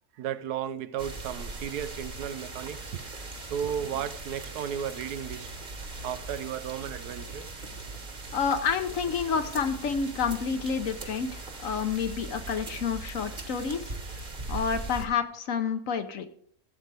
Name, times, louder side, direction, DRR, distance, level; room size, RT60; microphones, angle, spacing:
voice 1, 0.2-3.0 3.4-5.5 6.0-7.5, right 9 dB, 85° right, 1.2 m, -34 dB
sound 1, 1.0-15.1, right 2 dB, 35° right, 1.4 m, -40 dB
voice 2, 8.3-14.2 14.5-16.3, left 6 dB, 60° left, 1.2 m, -29 dB
15.5 x 8.0 x 3.4 m
omnidirectional pair, 1.6 m